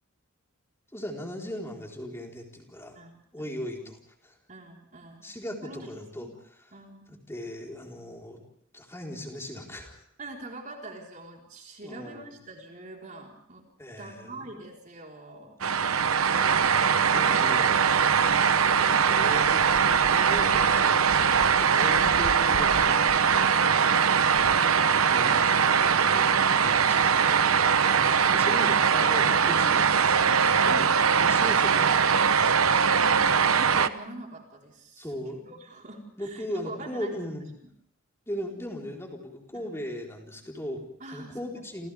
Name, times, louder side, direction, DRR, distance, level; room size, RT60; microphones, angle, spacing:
voice 1, 0.9-3.0 3.3-4.4 5.2-6.3 7.1-8.4 8.7-10.0 11.8-12.4 13.8-14.6 16.2-18.2 18.8-23.5 24.5-24.6 25.0-27.6 28.1-32.8 35.0-35.4 36.2-37.5 38.3-41.9, equal, 10° left, 0 dB, 4.5 m, -39 dB
voice 2, 2.9-3.6 4.5-5.3 5.6-6.3 6.7-7.1 10.2-13.6 14.0-15.6 16.4-16.6 24.2-25.0 28.3-28.7 33.0-37.2 37.6-37.7 39.5-39.7 41.0-41.6, right 2 dB, 40° right, 0 dB, 4.5 m, -44 dB
sound 1, 15.6-33.9, right 6 dB, 80° right, 1.0 m, -22 dB
29.5 x 28.0 x 3.6 m, 0.67 s
head